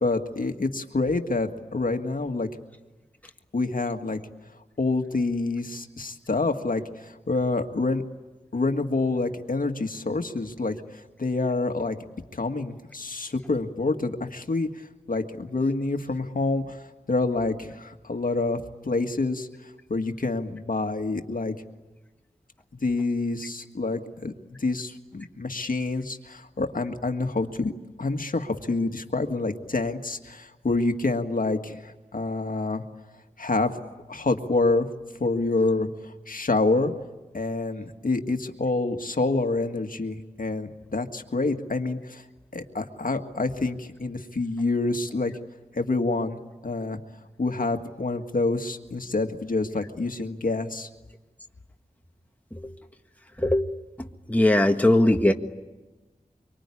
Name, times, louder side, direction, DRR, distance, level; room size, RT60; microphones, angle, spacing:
voice 1, 0.0-2.5 3.5-4.2 4.8-8.0 8.5-12.0 12.3-21.5 22.8-24.3 24.6-27.7 28.0-32.8 33.4-33.7 34.1-34.9 35.2-36.9 37.3-42.2 42.5-45.3 45.7-46.4 46.6-47.0 47.4-50.9, left 3 dB, 65° left, 5 dB, 1.8 m, -27 dB
voice 2, 53.4-55.3, left 1 dB, 10° left, 4 dB, 1.5 m, -21 dB
24.5 x 24.5 x 9.8 m, 1.1 s
wide cardioid pair, 65°, 15 cm